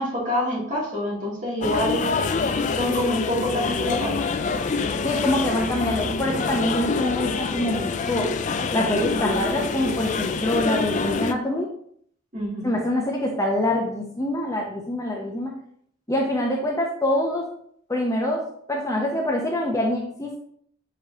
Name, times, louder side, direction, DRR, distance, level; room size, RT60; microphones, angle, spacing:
voice 1, 0.0-2.1 2.7-4.3 12.3-12.7, left 1 dB, 40° right, -6 dB, 2.6 m, -26 dB
sound 1, 1.6-11.3, left 4 dB, 35° left, 0.3 m, -26 dB
voice 2, 5.0-8.3 8.7-11.7 12.6-15.5 16.1-17.5 17.9-18.4 18.7-20.4, left 1 dB, 15° left, -1 dB, 0.7 m, -25 dB
7.2 x 4.9 x 2.8 m, 0.64 s
head